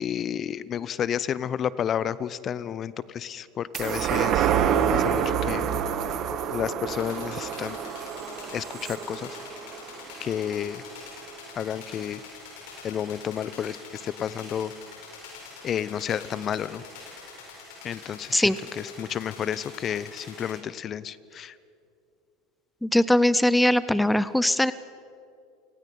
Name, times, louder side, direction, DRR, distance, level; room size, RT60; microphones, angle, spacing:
voice 1, 0.0-4.5 4.9-5.7 6.5-7.8 8.5-9.3 10.2-10.8 11.6-12.2 12.8-14.7 15.6-16.8 17.8-21.5, left 9 dB, 40° left, 18 dB, 0.7 m, -31 dB
sound 1, 3.7-10.5 11.0-11.1, right 8 dB, 50° right, 1.6 m, -27 dB
sound 2, 6.9-20.5, left 4 dB, 70° left, 7.9 m, -45 dB
voice 2, 22.8-24.7, left 1 dB, 5° left, 16 dB, 0.6 m, -21 dB
29.0 x 19.0 x 5.5 m, 2.5 s
hypercardioid pair, 85°, 0 cm